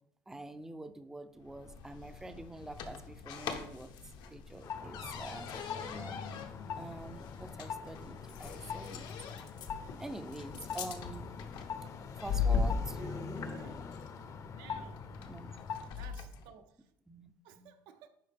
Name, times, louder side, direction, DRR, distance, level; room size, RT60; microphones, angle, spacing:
voice 1, 0.3-3.9 4.3-6.2 6.8-9.1 10.0-11.3 12.2-13.8 14.7-14.8 15.3-15.5 17.1-17.3 17.6-17.7, right 2 dB, 5° right, 10 dB, 0.4 m, -46 dB
sound 1, 1.4-16.5, left 5 dB, 70° left, 0.9 m, -40 dB
sound 2, 4.6-16.0, left 6 dB, 45° left, 0.7 m, -43 dB
voice 2, 12.9-13.8 14.6-15.1 16.0-16.9 17.4-18.1, right 8 dB, 85° right, 7 dB, 0.7 m, -55 dB
10.5 x 3.9 x 3.4 m, 0.79 s
cardioid pair, 110°, 8 cm